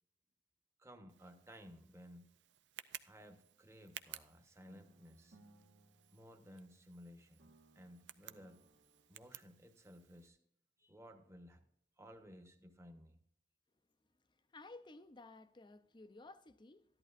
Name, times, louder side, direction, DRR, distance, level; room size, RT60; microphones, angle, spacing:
voice 1, 0.8-2.3 3.0-5.4 6.1-7.5 7.7-8.6 9.1-10.4 10.8-11.6 12.0-13.2, equal, 15° right, 1.1 m, -57 dB
Tick, 1.1-10.3, right 11 dB, 80° right, 0.5 m, -57 dB
sound 1, 4.7-7.0 7.4-9.6, right 1 dB, 65° right, 1.0 m, -67 dB
voice 2, 14.5-16.9, left 2 dB, 25° left, 0.6 m, -55 dB
13.5 x 11.0 x 2.5 m
head